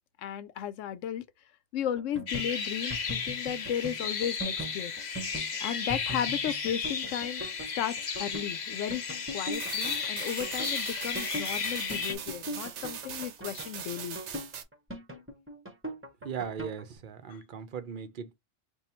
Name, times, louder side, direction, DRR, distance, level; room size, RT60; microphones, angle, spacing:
voice 1, 0.2-1.2 1.7-4.9 5.6-7.4 7.8-9.0 9.3-14.2 17.3-17.4, left 10 dB, 90° left, 0.9 m, -35 dB
sound 1, 2.0-16.8, right 1 dB, 10° right, 0.8 m, -41 dB
sound 2, 2.3-12.1, left 5 dB, 45° left, 0.7 m, -34 dB
sound 3, 9.5-14.6, right 8 dB, 70° right, 1.0 m, -41 dB
voice 2, 16.2-18.3, right 7 dB, 50° right, 0.7 m, -38 dB
3.6 x 2.3 x 4.3 m
omnidirectional pair, 1.3 m